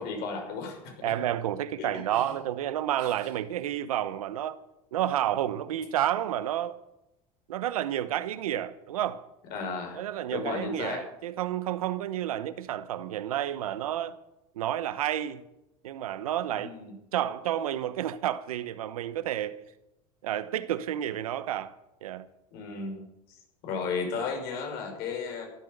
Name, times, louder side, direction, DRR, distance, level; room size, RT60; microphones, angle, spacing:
voice 1, 0.0-1.1 1.8-1.9 2.2-2.3 3.0-3.1 9.5-10.0 10.3-11.0 16.5-16.9 22.5-23.4 23.6-25.5, left 5 dB, 65° left, 6.0 m, -34 dB
voice 2, 1.0-4.6 4.9-6.8 7.5-9.3 9.9-14.2 14.5-15.4 15.8-16.7 17.1-19.6 20.2-21.7 22.0-22.3, right 11 dB, 85° right, 1.0 m, -30 dB
14.0 x 12.0 x 6.7 m
hypercardioid pair, 85°, 18 cm